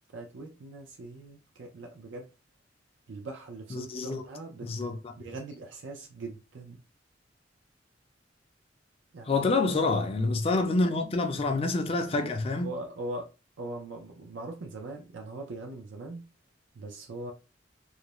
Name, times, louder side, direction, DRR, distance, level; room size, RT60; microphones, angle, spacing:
voice 1, 0.1-2.3 3.1-6.8 9.1-9.4 12.1-12.3 12.6-13.3 13.6-16.3 16.8-17.3, right 2 dB, 85° right, 0.5 m, -41 dB
voice 2, 3.7-4.3 4.6-5.0 9.3-12.7, left 3 dB, 30° left, 0.4 m, -27 dB
2.4 x 2.0 x 2.9 m
head